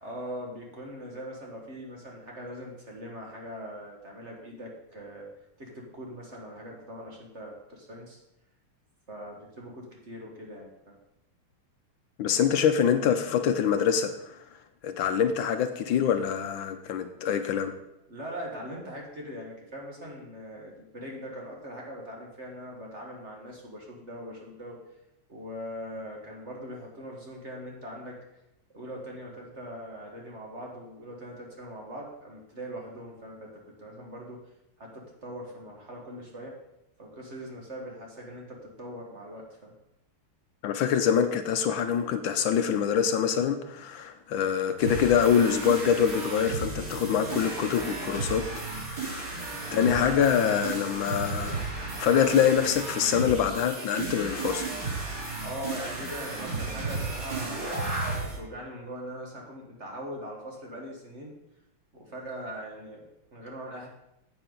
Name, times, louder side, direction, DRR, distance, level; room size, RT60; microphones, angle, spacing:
voice 1, 0.0-5.3 5.6-8.2 9.1-11.0 18.1-24.8 25.3-28.2 28.7-34.4 34.8-36.5 37.0-39.7 55.4-57.8 58.2-61.3 61.9-63.9, equal, 40° right, -1 dB, 1.4 m, -41 dB
voice 2, 12.2-14.4 14.8-17.7 40.6-48.5 48.8-49.3 49.7-51.6 52.0-54.7, left 8 dB, 75° left, 8 dB, 1.3 m, -25 dB
sound 1, 44.8-58.4, right 3 dB, 55° right, 3.9 m, -34 dB
10.0 x 7.9 x 3.9 m, 0.87 s
omnidirectional pair, 2.3 m